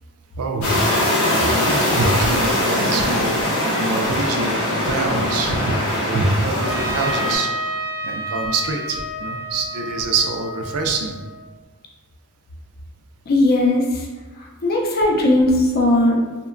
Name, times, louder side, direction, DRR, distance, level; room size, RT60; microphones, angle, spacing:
voice 1, 0.4-0.8 1.2-7.7 8.0-11.1, right 3 dB, 75° right, 3 dB, 0.4 m, -25 dB
sound 1, 0.6-7.3, left 1 dB, 80° left, 0.7 m, -21 dB
Trumpet, 6.6-11.4, equal, 5° right, 0.7 m, -30 dB
voice 2, 13.3-14.1 14.6-16.2, left 1 dB, 45° left, -1 dB, 0.4 m, -17 dB
2.8 x 2.2 x 2.4 m, 1.2 s
head